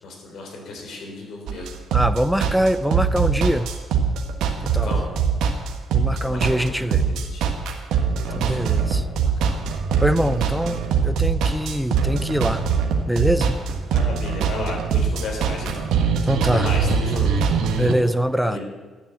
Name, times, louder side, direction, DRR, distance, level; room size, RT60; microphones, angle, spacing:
voice 1, 0.0-1.8 4.8-5.1 6.1-7.6 8.2-8.7 9.0-9.6 10.6-10.8 13.9-17.5 18.4-18.6, left 2 dB, 70° left, 1 dB, 3.5 m, -34 dB
sound 1, 1.5-17.9, right 6 dB, 85° right, 1.4 m, -22 dB
voice 2, 1.9-3.7 4.6-4.9 5.9-7.0 8.3-9.1 10.0-12.7 13.1-13.6 16.3-16.7 17.8-18.6, equal, ahead, 12 dB, 0.6 m, -23 dB
12.0 x 7.2 x 7.8 m, 1.4 s
cardioid pair, 90°, 0 cm